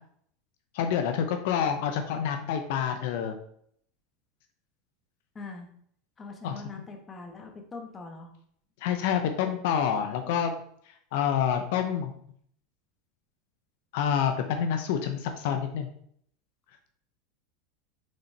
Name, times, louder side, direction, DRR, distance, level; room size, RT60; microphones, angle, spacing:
voice 1, 0.7-3.3 6.4-6.5 8.8-10.5 11.1-12.1 13.9-15.9, left 8 dB, 70° left, 6 dB, 0.8 m, -27 dB
voice 2, 5.3-5.7 6.2-8.3, left 4 dB, 20° left, 3 dB, 1.3 m, -42 dB
6.2 x 4.4 x 4.2 m, 0.64 s
supercardioid pair, 130°, 0 cm